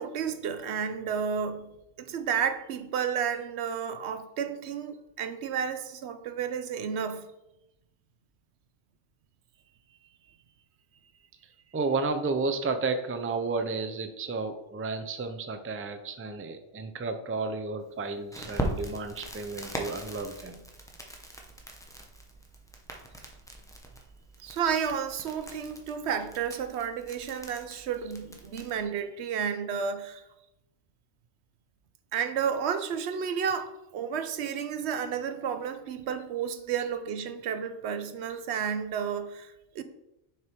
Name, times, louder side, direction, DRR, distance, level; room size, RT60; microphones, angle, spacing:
voice 1, 0.0-1.7 2.0-7.3 24.4-30.2 32.1-39.8, right 7 dB, 90° right, 0.9 m, -32 dB
voice 2, 11.7-20.6, right 3 dB, 20° right, 0.3 m, -32 dB
Crackle, 18.3-28.8, right 1 dB, 5° left, 0.8 m, -40 dB
6.7 x 5.2 x 4.5 m
omnidirectional pair, 1.1 m